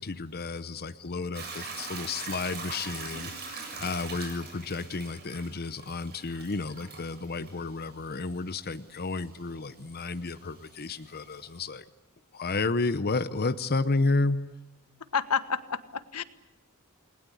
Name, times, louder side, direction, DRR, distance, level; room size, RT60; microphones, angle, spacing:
voice 1, 0.0-3.3 3.8-11.8 12.3-14.5, left 3 dB, 45° left, 11 dB, 0.8 m, -31 dB
Hiss / Toilet flush / Trickle dribble, 1.3-11.6, right 4 dB, 45° right, 7.3 m, -43 dB
voice 2, 15.1-16.2, left 6 dB, 90° left, 12 dB, 1.4 m, -29 dB
29.0 x 20.5 x 8.4 m, 1.1 s
head